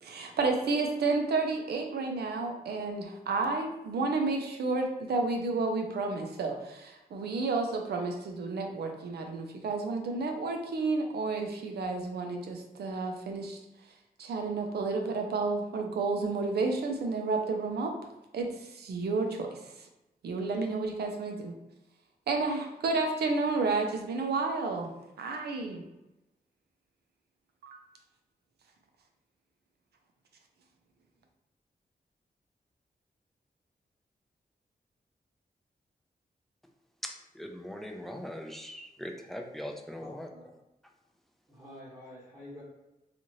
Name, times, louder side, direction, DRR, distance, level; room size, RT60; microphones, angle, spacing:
voice 1, 0.0-13.6 14.2-17.9 18.3-19.9 20.2-21.5 22.3-24.9 25.2-25.8 27.6-27.8, right 3 dB, 90° right, 4 dB, 0.5 m, -31 dB
voice 2, 37.0-40.3, equal, ahead, 3 dB, 0.4 m, -40 dB
voice 3, 40.0-40.4 41.5-42.6, left 1 dB, 20° right, -8 dB, 0.9 m, -48 dB
2.7 x 2.4 x 3.0 m, 0.95 s
wide cardioid pair, 90°, 16 cm